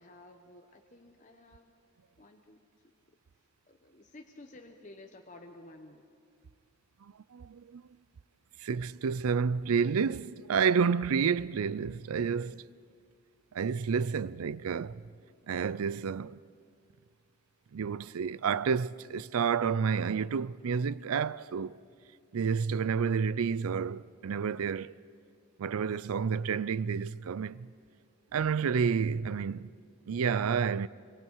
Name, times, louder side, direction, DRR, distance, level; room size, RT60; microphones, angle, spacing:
voice 1, 0.0-1.7 2.2-2.9 3.7-6.0, left 2 dB, 35° left, 0.9 m, -53 dB
voice 2, 7.0-7.8 8.6-12.7 13.5-15.0 15.5-16.4 17.7-21.8 22.3-25.0 25.6-27.7 28.3-29.7 30.1-30.9, right 6 dB, 80° right, 0.4 m, -30 dB
24.5 x 23.5 x 4.7 m
head